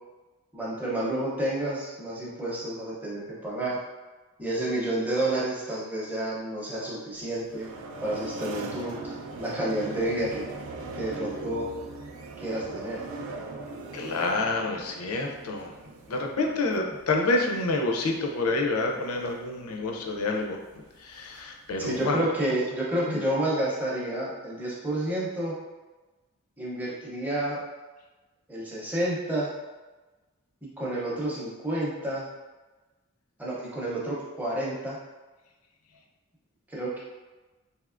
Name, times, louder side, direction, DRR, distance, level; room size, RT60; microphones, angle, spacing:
voice 1, 0.5-3.8 4.4-7.7 8.0-10.4 11.0-11.7 12.4-13.0 21.8-25.5 26.6-27.6 28.5-29.5 30.8-32.2 33.4-35.0 36.7-37.0, right 1 dB, 5° right, -6 dB, 0.6 m, -30 dB
sound 1, 7.2-22.1, right 3 dB, 75° right, 0.4 m, -41 dB
voice 2, 13.9-15.7 16.1-20.6 21.0-22.2 23.1-23.2, left 2 dB, 80° left, 1 dB, 0.5 m, -28 dB
3.4 x 2.7 x 2.4 m, 1.2 s
head